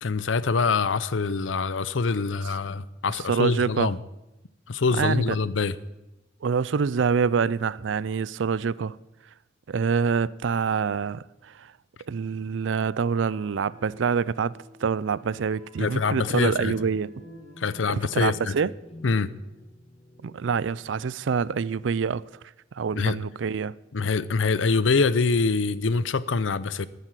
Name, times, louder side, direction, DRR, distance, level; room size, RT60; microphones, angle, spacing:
voice 1, 0.0-4.0 4.7-5.8 15.8-16.7 17.6-18.5 19.0-19.3 22.9-23.2 23.9-26.9, left 4 dB, 85° left, 0.7 m, -24 dB
voice 2, 3.3-3.9 5.0-5.4 6.4-9.0 9.7-11.2 11.5-11.7 12.1-17.1 17.9-18.7 20.2-22.2 22.7-23.8, right 6 dB, 70° right, 0.4 m, -26 dB
Wind instrument woodwind instrument, 12.8-18.7, right 2 dB, 35° right, 4.1 m, -54 dB
sound 1, 15.9-22.2, left 1 dB, 35° left, 1.0 m, -50 dB
11.0 x 9.9 x 9.0 m
head